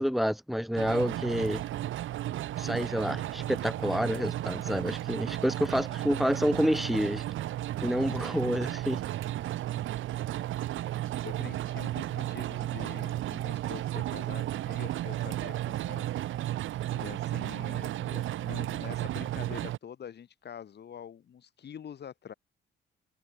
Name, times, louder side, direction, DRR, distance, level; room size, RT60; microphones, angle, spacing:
voice 1, 0.0-1.6 2.6-7.2 7.8-9.0, equal, ahead, 2.0 m, -28 dB
sound 1, 0.8-19.8, right 14 dB, 80° right, 2.3 m, -34 dB
voice 2, 11.2-16.1 16.4-16.5 16.9-22.3, left 8 dB, 55° left, 6.1 m, -45 dB
cardioid pair, 90°, 20 cm